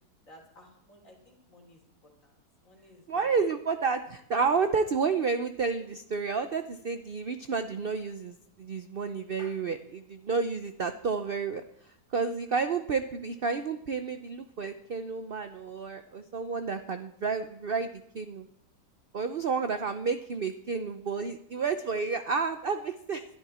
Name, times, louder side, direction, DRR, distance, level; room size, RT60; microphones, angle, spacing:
voice 1, 0.3-1.8 2.2-2.3 2.6-3.5 4.4-4.5, left 1 dB, 45° left, 1 dB, 3.9 m, -55 dB
voice 2, 3.1-11.6 12.1-18.5 19.1-23.3, right 5 dB, 55° right, 9 dB, 0.6 m, -30 dB
21.5 x 12.0 x 4.3 m, 0.73 s
omnidirectional pair, 1.9 m